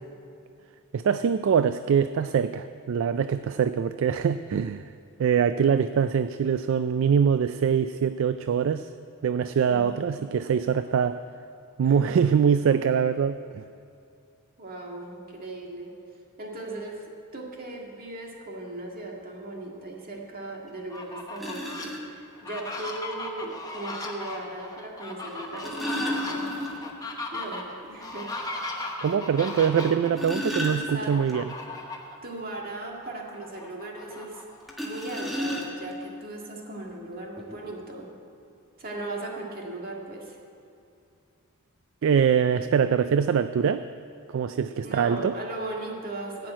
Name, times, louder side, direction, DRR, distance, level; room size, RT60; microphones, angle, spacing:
voice 1, 0.9-4.9 5.2-8.9 9.2-11.2 11.8-13.6 29.0-31.4 42.0-43.9 44.3-45.3, right 7 dB, 60° right, 11 dB, 0.3 m, -23 dB
voice 2, 9.7-10.3 11.8-12.2 14.6-15.9 16.4-17.0 17.3-26.5 27.3-28.3 30.9-31.1 31.6-31.8 32.2-34.4 34.8-38.1 38.8-40.4 44.8-46.5, right 2 dB, 45° right, -1 dB, 1.9 m, -38 dB
sound 1, 20.7-20.8 21.4-22.0 23.4-23.5 25.3-27.0 27.4-27.5 27.9-28.0 28.5-28.6 29.8-31.3 34.7-36.0 36.9-37.0 37.4-37.6, equal, ahead, 1.5 m, -32 dB
Fowl, 20.8-21.9 22.3-30.1 31.1-32.2 32.6-32.7 33.1-34.8, left 2 dB, 15° left, 1.0 m, -37 dB
15.0 x 5.9 x 8.8 m, 2.5 s
head